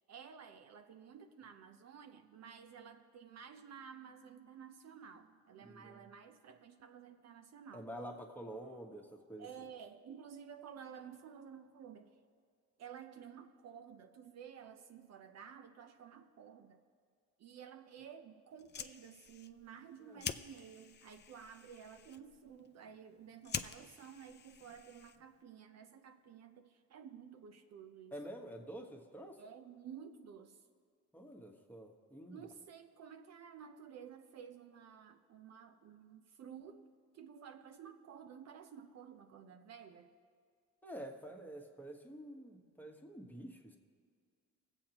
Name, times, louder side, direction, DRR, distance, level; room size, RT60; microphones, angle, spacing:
voice 1, 0.0-7.9 9.4-12.2 12.8-16.8 17.4-28.1 29.4-30.6 32.3-36.9 37.1-40.1, right 7 dB, 60° right, 7 dB, 0.7 m, -53 dB
voice 2, 5.6-6.1 7.7-9.5 20.0-20.2 28.1-29.4 31.1-32.4 40.8-43.8, right 1 dB, 5° left, 1 dB, 1.3 m, -48 dB
Fire, 18.5-25.4, left 8 dB, 35° left, 0.5 m, -47 dB
21.0 x 8.0 x 2.9 m, 2.1 s
cardioid pair, 90°, 30 cm